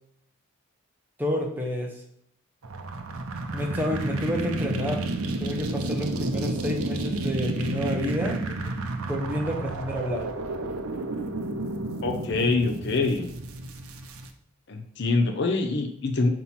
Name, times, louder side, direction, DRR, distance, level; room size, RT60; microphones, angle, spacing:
voice 1, 1.2-2.0 3.5-5.1 5.4-8.4 9.1-10.3, left 1 dB, 10° right, 0 dB, 0.9 m, -29 dB
sound 1, 2.6-14.3, right 2 dB, 80° right, 0.7 m, -31 dB
voice 2, 12.0-13.3 14.7-16.3, left 3 dB, 50° left, 4 dB, 0.6 m, -25 dB
5.8 x 4.3 x 4.2 m, 0.70 s
head